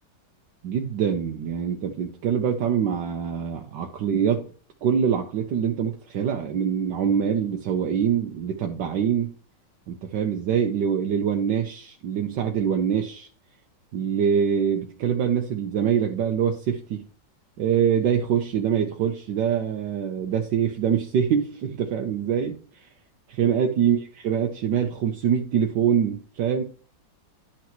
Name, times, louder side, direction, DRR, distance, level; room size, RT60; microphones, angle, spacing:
voice 1, 0.6-4.5 4.8-9.3 9.9-13.3 13.9-17.1 17.6-22.9 23.3-26.6, right 8 dB, 75° right, 3 dB, 1.5 m, -24 dB
11.5 x 5.9 x 3.0 m, 0.40 s
omnidirectional pair, 2.0 m